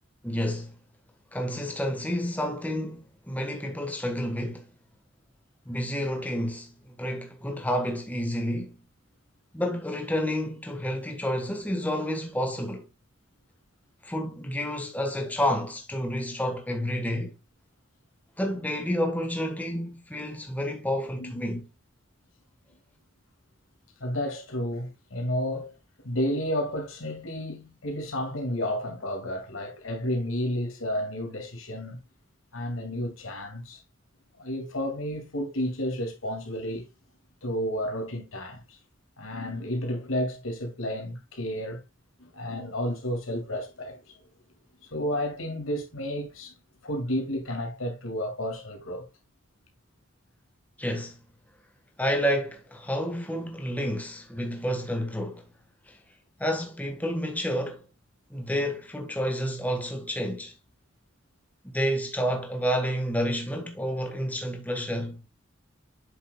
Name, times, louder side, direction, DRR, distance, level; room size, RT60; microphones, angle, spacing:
voice 1, 0.2-0.8 1.3-4.7 5.6-8.8 9.5-12.9 14.0-17.3 18.4-21.7 50.8-51.2 52.0-55.5 55.9-56.0 56.4-57.9 58.3-60.5 61.6-65.2, equal, 10° left, 1.3 m, -30 dB
voice 2, 21.2-21.6 24.0-25.7 26.0-32.0 32.5-33.8 34.4-36.9 37.4-38.8 39.2-41.8 42.2-44.2 44.8-46.5 46.8-49.1, equal, 85° left, 2.3 m, -31 dB
8.0 x 6.4 x 2.3 m
head